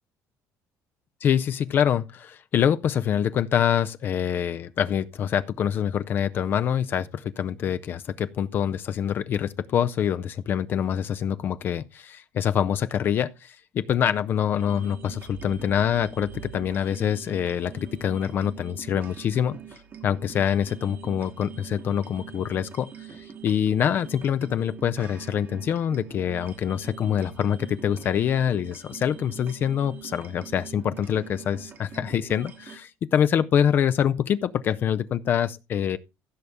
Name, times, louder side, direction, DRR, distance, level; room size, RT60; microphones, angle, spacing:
voice 1, 1.2-19.6 20.0-36.0, left 9 dB, 35° left, 0.4 m, -25 dB
sound 1, 14.6-32.8, right 8 dB, 30° right, 1.1 m, -44 dB
15.5 x 6.7 x 3.5 m
cardioid pair, 175°, 6 cm